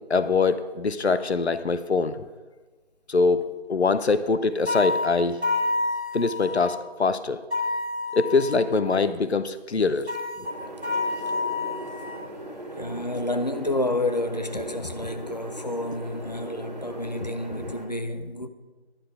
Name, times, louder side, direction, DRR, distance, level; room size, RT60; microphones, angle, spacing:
voice 1, 0.1-2.2 3.1-5.4 6.1-7.4 8.1-10.5, left 4 dB, 80° left, 0.7 m, -23 dB
sound 1, 4.7-6.8 7.5-8.8 10.1-12.3, left 3 dB, 90° right, 1.6 m, -29 dB
sound 2, 10.4-17.9, right 1 dB, 40° right, 2.1 m, -39 dB
voice 2, 12.8-18.5, left 1 dB, 40° left, 0.6 m, -29 dB
10.5 x 9.2 x 4.7 m
figure-of-eight pair, 165°, 32 cm